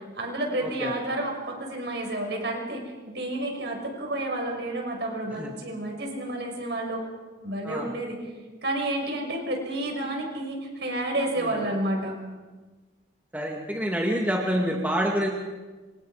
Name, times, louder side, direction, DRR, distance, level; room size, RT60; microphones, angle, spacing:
voice 1, 0.0-7.1 7.4-8.2 8.6-12.2, right 1 dB, 60° right, 2 dB, 6.0 m, -30 dB
voice 2, 0.6-0.9 5.4-5.5 7.6-7.9 11.4-11.6 13.3-15.3, equal, 10° right, -1 dB, 2.1 m, -27 dB
28.0 x 26.5 x 5.0 m, 1.3 s
head